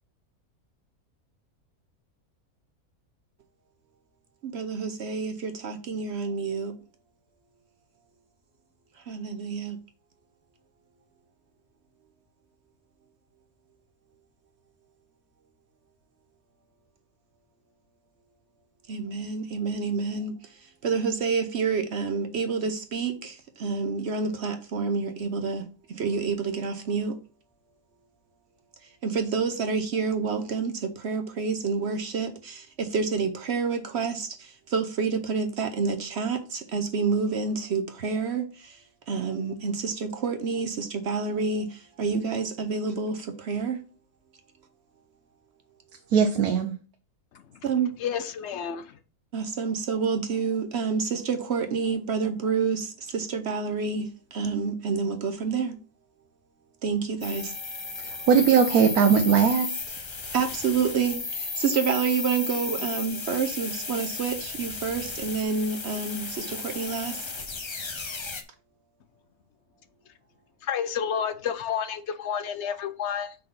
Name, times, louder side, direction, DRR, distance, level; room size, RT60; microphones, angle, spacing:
voice 1, 4.4-6.7 9.0-9.8 18.9-27.2 28.8-43.8 47.6-47.9 49.3-55.8 56.8-57.5 60.3-67.3, right 5 dB, 55° right, 0.9 m, -28 dB
voice 2, 46.1-46.7 58.3-59.7, right 7 dB, 90° right, 1.2 m, -19 dB
voice 3, 48.0-48.9 70.6-73.4, left 8 dB, 60° left, 0.8 m, -30 dB
sound 1, 57.2-68.4, left 4 dB, 40° left, 0.4 m, -34 dB
5.6 x 4.0 x 5.4 m
omnidirectional pair, 1.5 m